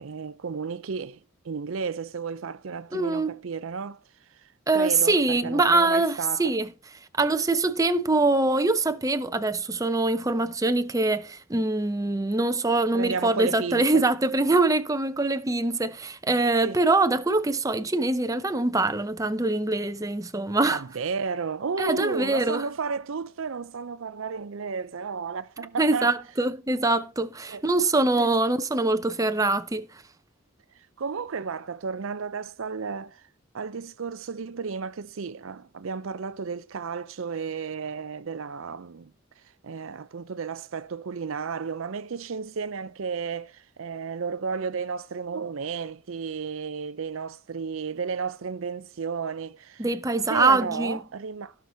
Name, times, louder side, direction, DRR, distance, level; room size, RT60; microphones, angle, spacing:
voice 1, 0.0-4.0 4.3-6.5 12.9-14.0 16.6-16.8 20.7-26.1 27.5-27.6 28.2-28.4 30.7-33.2 33.5-39.1 39.6-49.9 50.3-51.5, right 5 dB, 65° right, 0.5 m, -33 dB
voice 2, 2.9-3.3 4.7-6.7 7.2-20.8 21.8-22.6 25.8-30.0 49.8-51.0, right 2 dB, 15° right, 0.7 m, -24 dB
17.0 x 5.9 x 3.9 m
head